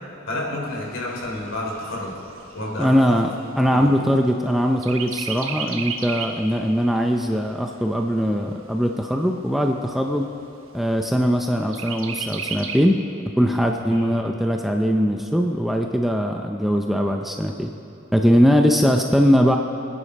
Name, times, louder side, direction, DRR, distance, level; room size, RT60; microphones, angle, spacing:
voice 1, 0.3-2.1 2.5-2.9 3.7-3.9 13.9-14.1, left 1 dB, 65° left, -3 dB, 3.4 m, -29 dB
Chirp tweet, 0.7-4.4 4.8-6.5 6.9-7.0 7.4-8.4 9.0-9.1 9.4-9.5 9.9-10.5 11.7-12.8, right 6 dB, 75° right, 1.1 m, -33 dB
voice 2, 2.8-10.3 10.7-12.9 13.4-17.7 18.1-19.6, equal, ahead, 2 dB, 0.6 m, -20 dB
25.5 x 10.0 x 4.2 m, 2.7 s
head